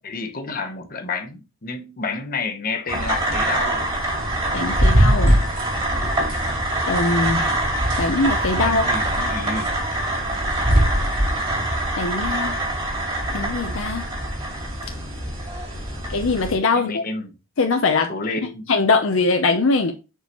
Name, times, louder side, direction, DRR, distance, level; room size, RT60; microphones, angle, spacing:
voice 1, 0.0-3.8 8.6-9.7 16.7-17.3 18.1-18.7, left 4 dB, 40° left, 1.0 m, -30 dB
sound 1, 2.9-16.6, right 1 dB, 25° right, 2.3 m, -25 dB
sound 2, 4.1-11.8, equal, 65° right, 3.4 m, -23 dB
voice 2, 4.5-5.4 6.8-7.5 8.0-8.8 12.0-12.6 13.3-14.1 16.1-17.0 17.6-18.1 18.7-19.9, left 3 dB, 65° left, 0.7 m, -21 dB
6.7 x 4.8 x 3.0 m
head